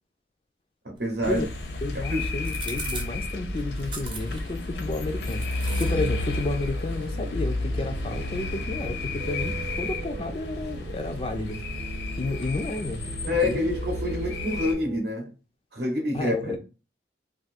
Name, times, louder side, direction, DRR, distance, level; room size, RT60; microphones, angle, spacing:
voice 1, 0.8-1.5 1.9-2.2 13.3-15.3 15.7-16.6, left 1 dB, 60° right, 0.8 m, -27 dB
sound 1, 0.9-12.6, right 4 dB, 25° right, 0.7 m, -46 dB
sound 2, 1.2-14.7, left 2 dB, 70° left, 0.7 m, -32 dB
voice 2, 1.8-11.6 12.2-13.7 16.1-16.6, left 2 dB, 30° left, 0.3 m, -32 dB
sound 3, 5.7-15.0, right 5 dB, 80° right, 0.4 m, -40 dB
2.6 x 2.4 x 4.1 m
head